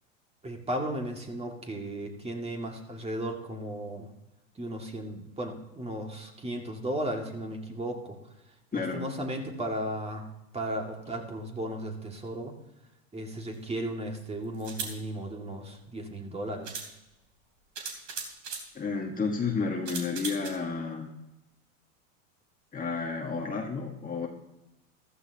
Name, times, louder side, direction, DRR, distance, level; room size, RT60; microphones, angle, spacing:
voice 1, 0.4-4.1 4.6-8.2 8.7-10.3 10.5-12.5 13.1-16.7, right 1 dB, 15° right, 2 dB, 2.2 m, -35 dB
sound 1, 13.5-13.6 14.5-15.0 16.1-16.2 16.6-16.9 17.8-18.7 19.9-20.5, right 5 dB, 45° right, 3.3 m, -37 dB
voice 2, 18.7-21.1 22.7-24.3, left 4 dB, 20° left, 1 dB, 1.6 m, -31 dB
15.0 x 13.0 x 2.9 m, 0.94 s
hypercardioid pair, 105°, 39 cm